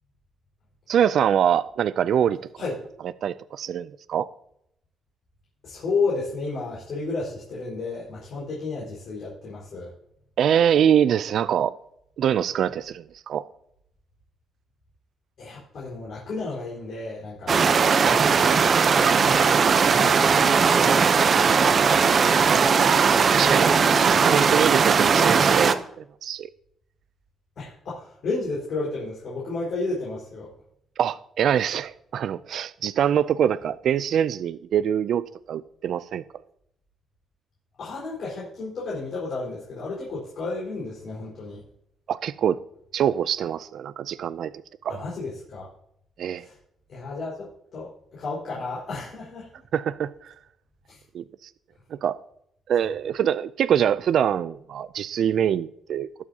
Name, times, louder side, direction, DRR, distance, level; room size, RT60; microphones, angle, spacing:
voice 1, 0.9-2.4 3.2-4.3 10.4-11.7 12.2-13.5 22.8-26.5 31.0-36.2 42.1-42.6 42.9-44.5 44.8-45.0 46.2-46.4 49.7-50.3 51.1-51.5 51.9-52.2 52.7-56.1, right 9 dB, 60° right, 0.3 m, -24 dB
voice 2, 5.6-9.9 15.4-17.6 17.9-18.6 18.9-19.6 19.9-22.6 27.6-30.5 37.8-41.6 44.9-45.7 46.3-46.6 46.9-49.6 50.9-51.0 52.8-52.9, left 3 dB, 55° left, 4.6 m, -33 dB
sound 1, 17.5-25.7, right 5 dB, 40° right, 0.7 m, -19 dB
20.0 x 7.2 x 2.8 m
cardioid pair, 150°, 0 cm